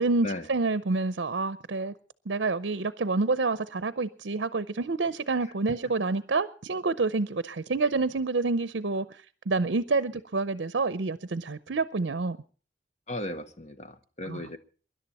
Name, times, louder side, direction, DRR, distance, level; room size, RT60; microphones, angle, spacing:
voice 1, 0.0-1.9 2.3-9.1 9.5-12.4 14.3-14.4, right 3 dB, 70° right, 0.6 m, -28 dB
voice 2, 13.1-14.6, left 1 dB, 35° left, 1.0 m, -36 dB
24.0 x 11.0 x 4.2 m
head